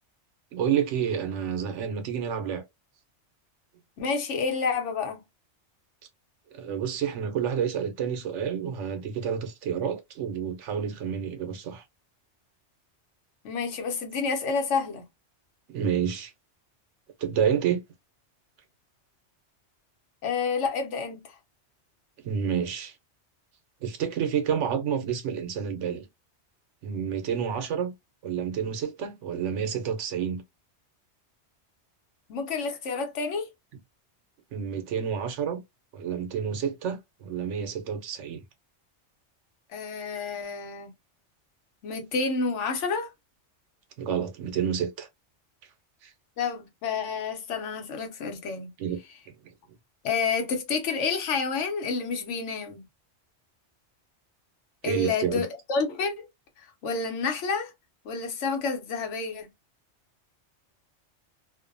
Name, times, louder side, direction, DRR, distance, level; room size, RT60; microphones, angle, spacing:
voice 1, 0.5-2.6 6.5-11.8 15.7-16.3 17.2-17.8 22.2-22.9 23.8-26.0 26.8-27.9 28.2-30.4 34.5-35.6 35.9-38.4 44.0-45.1 46.0-46.1 48.8-49.0 54.8-55.4, right 8 dB, 80° right, 1.0 m, -29 dB
voice 2, 4.0-5.2 13.4-15.0 20.2-21.4 32.3-33.5 39.7-40.9 41.8-43.1 46.4-48.7 50.0-52.8 54.8-56.3 56.6-57.7 58.0-59.5, left 5 dB, 80° left, 1.0 m, -29 dB
2.6 x 2.1 x 2.5 m
omnidirectional pair, 1.2 m